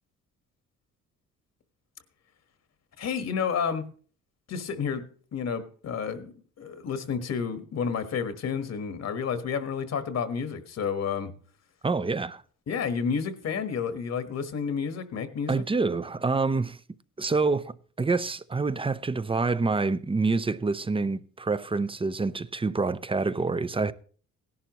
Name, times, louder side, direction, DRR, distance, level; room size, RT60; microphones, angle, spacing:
voice 1, 3.0-3.8 4.5-5.0 5.3-11.3 12.7-15.6, left 6 dB, 60° left, 1.6 m, -30 dB
voice 2, 11.8-12.4 15.5-16.8 17.2-23.9, right 3 dB, 20° right, 0.6 m, -27 dB
17.0 x 11.5 x 3.1 m
cardioid pair, 90°, 30 cm